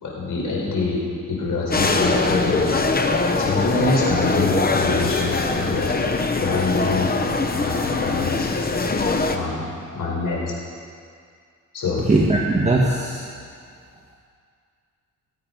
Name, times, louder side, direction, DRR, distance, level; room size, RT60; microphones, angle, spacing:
voice 1, 0.0-1.0 1.3-2.6 3.4-5.9 6.4-7.1 7.5-8.5 9.3-10.5 11.7-12.0, left 3 dB, 70° left, -4 dB, 4.5 m, -25 dB
sound 1, 1.7-9.4, left 3 dB, 30° left, 1.0 m, -22 dB
voice 2, 12.1-13.2, right 2 dB, 20° right, -3 dB, 1.4 m, -19 dB
19.0 x 9.0 x 5.3 m, 2.2 s
cardioid pair, 100°, 32 cm